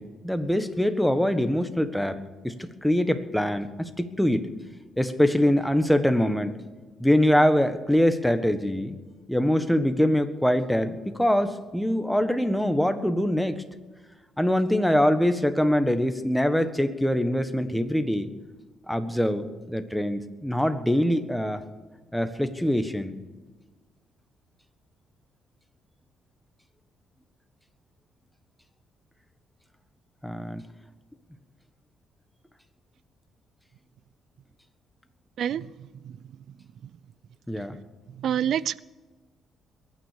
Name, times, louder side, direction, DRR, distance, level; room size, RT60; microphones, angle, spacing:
voice 1, 0.0-4.4 5.0-6.6 7.0-9.0 9.3-13.6 14.4-18.3 18.9-21.6 22.1-23.1 30.2-30.6 37.5-37.8, equal, ahead, 1.4 m, -24 dB
voice 2, 35.4-35.7 36.0-36.2 38.2-38.8, right 9 dB, 70° right, 0.5 m, -27 dB
22.5 x 9.5 x 6.7 m
cardioid pair, 90°, 0 cm